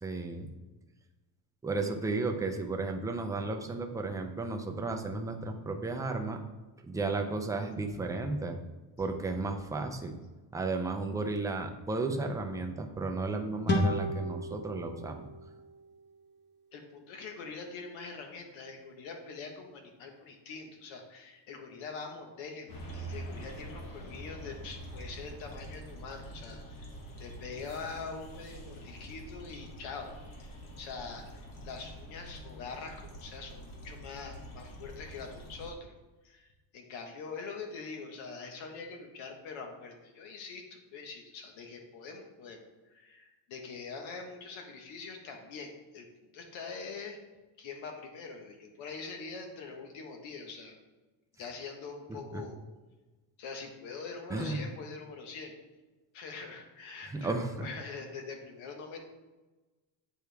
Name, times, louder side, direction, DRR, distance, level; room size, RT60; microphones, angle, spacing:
voice 1, 0.0-0.5 1.6-6.4 6.8-8.6 9.0-10.1 10.5-15.3 52.3-52.4 54.3-54.6 57.1-57.5, right 3 dB, 10° right, 4 dB, 0.3 m, -33 dB
sound 1, 13.7-17.0, left 1 dB, 25° left, 1.1 m, -34 dB
voice 2, 16.7-26.9 27.2-35.9 36.2-36.5 36.7-42.6 42.9-46.1 46.3-47.2 47.6-50.7 51.4-52.6 53.4-55.5 56.1-59.0, left 4 dB, 90° left, 3 dB, 1.4 m, -44 dB
sound 2, 22.7-35.7, right 1 dB, 45° left, 1.3 m, -45 dB
8.6 x 4.6 x 3.4 m, 1.2 s
cardioid pair, 155°, 46 cm